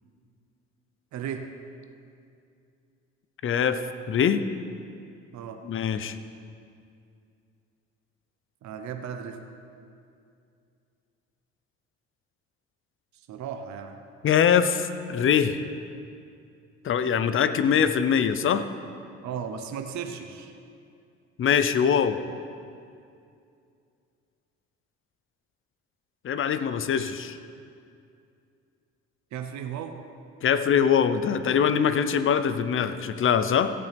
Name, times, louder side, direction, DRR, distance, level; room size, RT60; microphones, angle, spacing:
voice 1, 1.1-1.5 5.3-5.6 8.6-9.4 13.3-14.0 19.2-20.5 29.3-30.0, right 7 dB, 65° right, 6 dB, 1.0 m, -35 dB
voice 2, 3.4-3.8 4.1-4.4 5.6-6.2 14.2-15.6 16.8-18.6 21.4-22.2 26.2-27.4 30.4-33.7, left 7 dB, 40° left, 12 dB, 0.7 m, -23 dB
16.5 x 8.6 x 3.5 m, 2.5 s
supercardioid pair, 70°, 31 cm